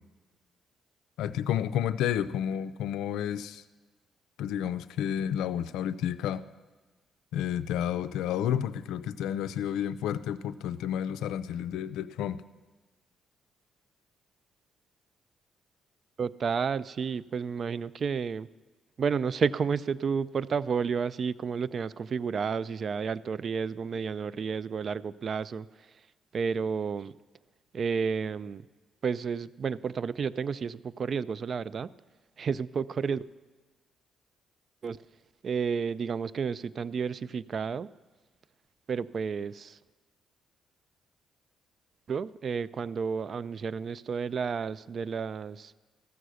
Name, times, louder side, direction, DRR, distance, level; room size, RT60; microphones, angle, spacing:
voice 1, 1.2-3.6 4.4-6.4 7.3-12.4, left 10 dB, 90° left, 13 dB, 0.4 m, -31 dB
voice 2, 16.2-18.5 19.0-25.7 26.3-27.1 27.7-28.6 29.0-31.9 32.4-33.2 34.8-35.0 35.4-37.9 38.9-39.8 42.1-45.7, right 6 dB, 50° right, 19 dB, 0.3 m, -31 dB
14.0 x 6.8 x 6.3 m, 1.3 s
cardioid pair, 90°, 0 cm